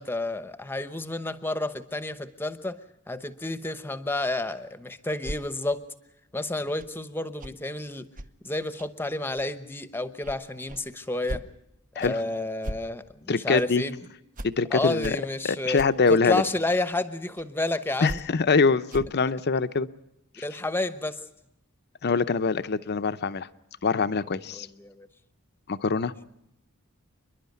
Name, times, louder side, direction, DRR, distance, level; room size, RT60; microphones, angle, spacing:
voice 1, 0.0-2.8 3.1-5.8 6.3-8.1 8.4-11.5 11.9-14.0 14.7-15.8 16.1-18.2 20.4-21.2 24.5-25.1, left 2 dB, 10° left, 11 dB, 0.9 m, -30 dB
sound 1, 5.2-5.4 6.8-6.9 7.4-7.5 8.1-8.3 8.8-8.9 9.4-9.5 10.2-10.4 10.7-10.8 11.3-11.4 12.0-12.1 12.6-12.8 13.5-13.6 14.3-14.5 15.0-15.1 15.7-15.9 16.4-16.5 17.4-17.5 18.1-18.2 18.9-19.2, right 1 dB, 40° right, 0.8 m, -37 dB
voice 2, 13.3-13.8 14.4-15.2 15.4-16.4 18.0-19.9 22.0-23.5 23.8-24.7 25.7-26.1, left 4 dB, 50° left, 12 dB, 0.7 m, -24 dB
29.0 x 11.0 x 9.5 m, 0.83 s
head